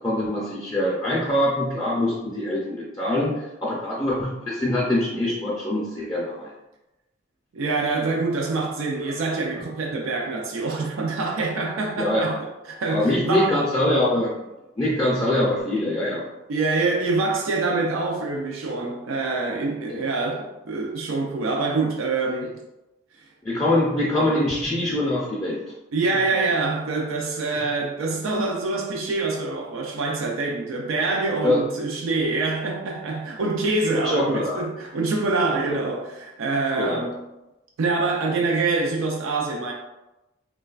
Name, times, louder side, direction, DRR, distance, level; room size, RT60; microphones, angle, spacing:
voice 1, 0.0-6.5 12.0-12.3 12.8-14.3 14.8-16.2 19.9-20.0 23.4-25.6 27.5-27.6 31.4-31.6 34.0-34.6 36.8-37.0, left 1 dB, 15° left, 0.4 m, -23 dB
voice 2, 7.5-13.6 16.5-22.6 25.9-37.1 37.8-39.7, right 3 dB, 90° right, 0.4 m, -25 dB
3.1 x 2.2 x 2.3 m
head